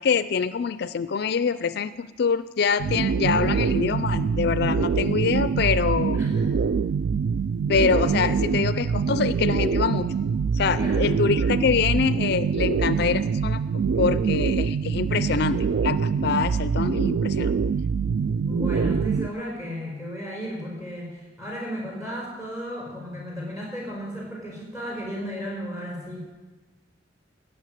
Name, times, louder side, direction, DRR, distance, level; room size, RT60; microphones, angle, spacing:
voice 1, 0.0-6.2 7.7-10.1 10.5-13.6 14.0-17.5, left 6 dB, 60° left, 14 dB, 0.4 m, -25 dB
sound 1, 2.8-19.3, right 6 dB, 60° right, 0.3 m, -24 dB
voice 2, 6.1-6.7 10.8-11.2 18.4-26.2, equal, 20° right, -2 dB, 4.8 m, -34 dB
15.5 x 6.6 x 9.2 m, 1.3 s
head